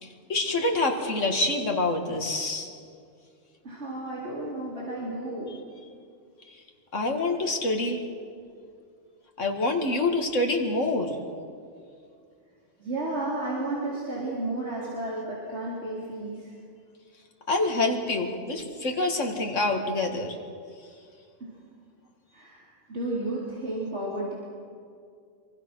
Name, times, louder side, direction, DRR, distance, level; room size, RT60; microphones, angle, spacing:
voice 1, 0.0-2.7 6.5-6.6 6.9-8.0 9.4-11.2 17.5-20.4, left 2 dB, 85° left, 3 dB, 2.3 m, -26 dB
voice 2, 3.6-5.5 12.8-16.5 21.4-21.5 22.3-24.3, right 2 dB, 65° right, -6 dB, 4.4 m, -32 dB
26.0 x 24.0 x 6.3 m, 2.3 s
omnidirectional pair, 1.2 m